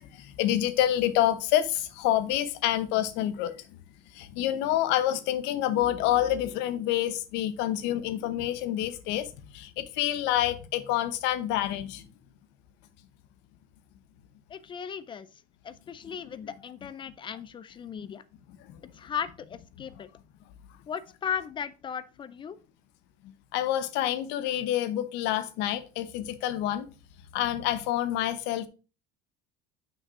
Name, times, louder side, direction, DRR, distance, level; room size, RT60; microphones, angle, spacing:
voice 1, 0.0-3.5 4.1-12.0 18.0-18.1 18.7-18.8 23.5-26.9 27.3-28.7, left 12 dB, 75° left, 0.9 m, -27 dB
voice 2, 14.5-15.3 15.6-18.2 18.9-20.1 20.9-22.6, left 8 dB, 25° left, 0.4 m, -36 dB
6.1 x 5.0 x 4.7 m
cardioid pair, 135°, 18 cm